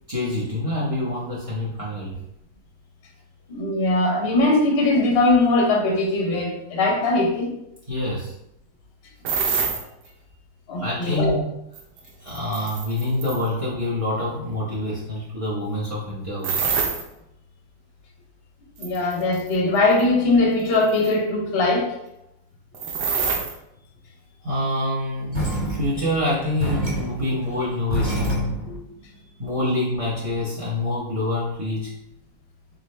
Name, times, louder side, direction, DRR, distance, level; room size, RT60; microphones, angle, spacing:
voice 1, 0.1-2.2 7.9-8.3 10.8-11.4 12.2-16.7 24.4-28.6 29.4-31.9, left 1 dB, 45° right, -7 dB, 0.4 m, -26 dB
voice 2, 3.5-7.6 10.7-11.3 18.8-21.9 28.7-28.8, left 2 dB, 50° left, 0 dB, 0.7 m, -20 dB
sound 1, 9.2-9.8 11.8-13.5 16.4-17.0 18.8-19.5 20.0-20.1 20.9-21.1 22.7-23.5, right 5 dB, 65° right, 1.2 m, -25 dB
sound 2, 25.3-28.8, right 2 dB, 10° right, 1.1 m, -28 dB
3.9 x 3.8 x 3.2 m, 0.81 s
omnidirectional pair, 2.1 m